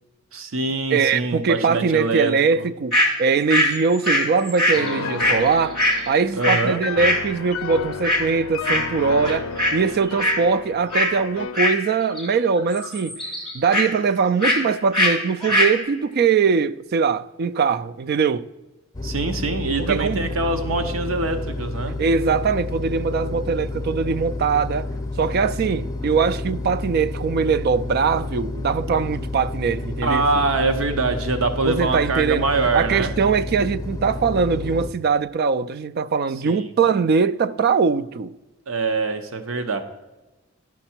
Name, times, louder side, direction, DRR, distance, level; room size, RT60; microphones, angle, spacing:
voice 1, 0.3-2.3 2.6-2.7 6.3-6.8 19.0-22.0 30.0-33.1 36.4-36.7 38.7-39.8, right 3 dB, 70° right, 0.8 m, -24 dB
voice 2, 0.9-5.8 6.1-9.5 9.7-13.2 13.5-18.5 19.8-20.3 22.0-24.9 25.2-30.3 31.6-32.5 32.7-38.4, right 5 dB, 50° right, 0.3 m, -21 dB
sound 1, 2.9-3.1 3.5-6.7 7.0-7.2 8.0-8.3 8.6-9.0 9.2-9.8 10.0-10.4 10.9-11.1 11.5-12.3 12.6-13.9 14.4-14.6 14.9-15.1 15.4-15.8, left 1 dB, ahead, 2.2 m, -21 dB
Piano, 4.7-11.7, left 5 dB, 85° left, 0.5 m, -32 dB
sound 2, 18.9-34.9, left 2 dB, 20° left, 0.7 m, -30 dB
11.0 x 5.9 x 4.4 m
head